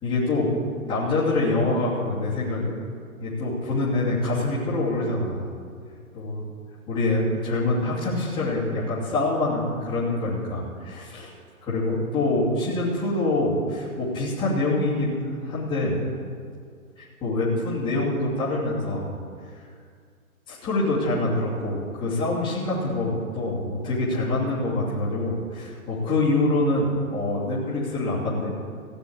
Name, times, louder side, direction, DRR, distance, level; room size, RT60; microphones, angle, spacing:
voice 1, 0.0-0.5 0.8-2.7 3.2-5.5 6.1-6.4 6.9-11.3 11.6-16.0 17.0-19.1 20.5-28.5, left 2 dB, 10° left, -9 dB, 2.7 m, -25 dB
16.0 x 6.3 x 8.6 m, 2.1 s
hypercardioid pair, 160°, 43 cm